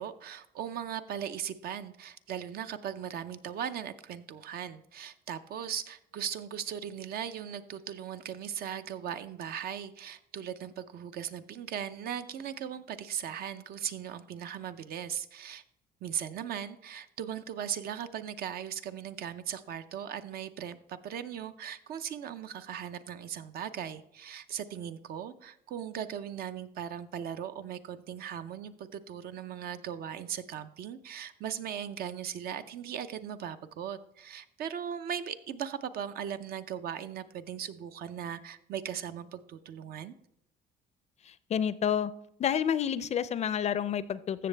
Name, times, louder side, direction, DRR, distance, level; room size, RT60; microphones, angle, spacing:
voice 1, 0.0-15.6 16.0-40.1, right 9 dB, 65° right, 11 dB, 0.6 m, -38 dB
voice 2, 41.5-42.1 42.4-44.5, left 8 dB, 40° left, 16 dB, 0.4 m, -29 dB
14.5 x 6.6 x 3.3 m, 0.76 s
cardioid pair, 110°, 17 cm